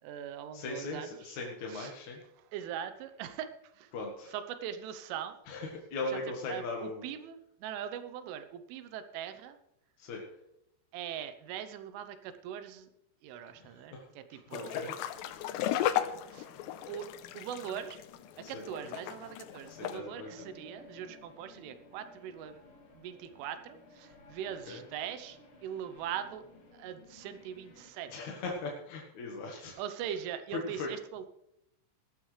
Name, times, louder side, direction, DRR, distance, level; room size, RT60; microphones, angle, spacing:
voice 1, 0.0-1.4 1.7-1.9 2.5-3.9 4.3-5.4 6.1-6.2 6.5-9.6 10.9-12.9 13.2-14.8 15.5-16.5 16.9-17.1 17.3-18.0 18.4-22.6 22.9-26.4 26.7-28.1 29.8-31.3, right 9 dB, 85° right, 10 dB, 3.5 m, -41 dB
voice 2, 0.5-2.2 3.9-4.3 5.5-7.1 10.0-10.2 13.6-14.9 15.3-15.5 18.4-18.7 19.7-20.3 24.7-24.8 28.1-29.8 30.5-30.9, left 3 dB, 60° left, 0 dB, 2.0 m, -39 dB
sound 1, 14.5-20.0, left 12 dB, 85° left, 2.5 m, -35 dB
sound 2, 15.0-27.9, left 3 dB, 40° left, 2.2 m, -56 dB
18.0 x 12.5 x 3.3 m, 0.82 s
omnidirectional pair, 5.6 m